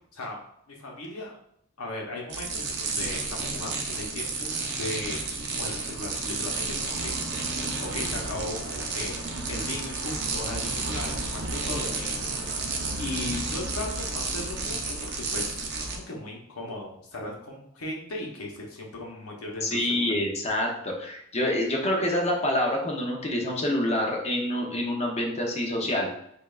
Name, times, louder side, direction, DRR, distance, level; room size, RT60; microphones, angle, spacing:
voice 1, 0.7-1.3 1.8-5.2 5.5-9.2 9.5-12.6 13.0-20.2, left 2 dB, 80° left, -1 dB, 0.8 m, -37 dB
sound 1, 2.3-16.0, right 3 dB, 50° right, 0.6 m, -31 dB
voice 2, 19.6-26.1, left 1 dB, 30° left, 0 dB, 0.7 m, -27 dB
5.1 x 2.3 x 2.4 m, 0.72 s
head